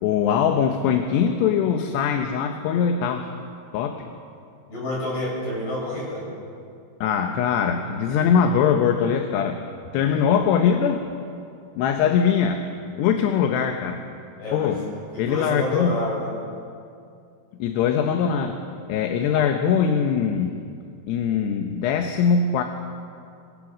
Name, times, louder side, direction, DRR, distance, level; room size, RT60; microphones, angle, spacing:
voice 1, 0.0-3.3 3.7-4.1 7.0-9.6 9.9-11.0 11.8-12.7 13.0-14.0 14.5-14.8 15.2-16.0 17.6-18.6 18.9-20.6 21.1-22.6, left 7 dB, 80° left, 5 dB, 3.1 m, -22 dB
voice 2, 4.7-6.2 14.4-14.8 15.1-16.3, left 1 dB, 65° left, -5 dB, 9.7 m, -28 dB
26.0 x 20.0 x 6.3 m, 2.4 s
omnidirectional pair, 4.9 m